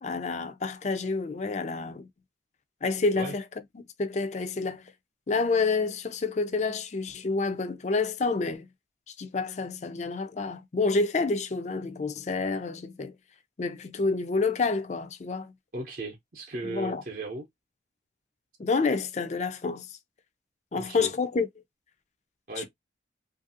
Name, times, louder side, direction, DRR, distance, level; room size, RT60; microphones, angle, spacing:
voice 1, 0.0-2.1 2.8-3.4 3.7-4.8 5.3-8.7 9.2-13.1 13.6-15.5 16.6-17.0 18.6-19.9 20.7-21.5 22.6-22.7, left 4 dB, 40° left, 0.4 m, -28 dB
voice 2, 15.7-17.4 20.7-21.1 22.5-22.6, right 2 dB, 50° right, 0.7 m, -36 dB
2.8 x 2.5 x 2.6 m
head